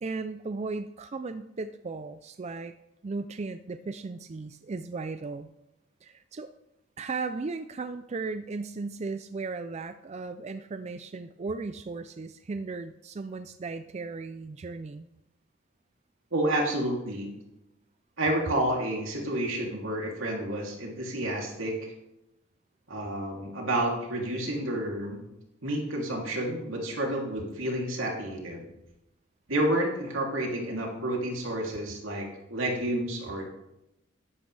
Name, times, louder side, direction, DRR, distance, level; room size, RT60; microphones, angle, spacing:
voice 1, 0.0-2.7 3.0-5.5 6.0-6.5 7.0-15.1, right 3 dB, 35° right, 10 dB, 0.4 m, -36 dB
voice 2, 16.3-17.3 18.2-21.9 22.9-25.2 25.6-28.7 29.5-33.5, right 1 dB, 85° right, -1 dB, 2.9 m, -30 dB
14.5 x 11.5 x 3.3 m, 0.91 s
head